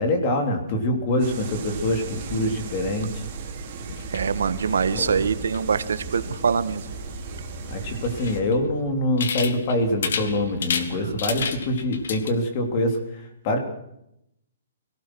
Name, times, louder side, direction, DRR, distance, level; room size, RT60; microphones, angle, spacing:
voice 1, 0.0-3.1 4.9-5.2 7.7-13.0 13.4-13.6, left 1 dB, 25° left, 5 dB, 3.4 m, -24 dB
sound 1, 1.2-8.4, right 4 dB, 25° right, 5.0 m, -35 dB
sound 2, 3.9-12.3, left 6 dB, 60° left, 2.6 m, -34 dB
voice 2, 4.1-6.9 11.0-11.2, right 6 dB, 80° right, 13 dB, 1.5 m, -24 dB
22.5 x 18.0 x 6.3 m, 0.78 s
hypercardioid pair, 180°, 0 cm